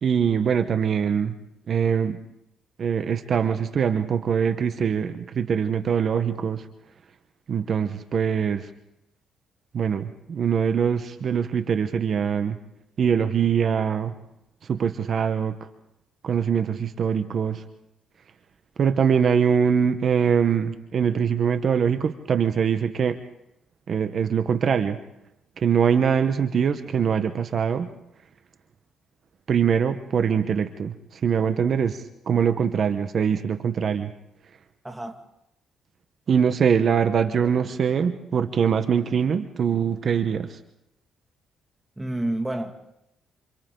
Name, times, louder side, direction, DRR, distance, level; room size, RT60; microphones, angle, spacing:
voice 1, 0.0-1.4 1.7-2.2 2.8-6.7 7.5-8.7 9.7-12.6 13.0-14.1 14.6-15.6 16.2-17.6 18.8-23.2 23.9-25.0 25.6-27.9 29.5-34.1 36.3-40.6, right 7 dB, 55° right, 1.1 m, -23 dB
voice 2, 34.8-35.2 42.0-42.7, right 1 dB, 10° right, 2.2 m, -29 dB
28.0 x 28.0 x 3.9 m
cardioid pair, 90°, 0 cm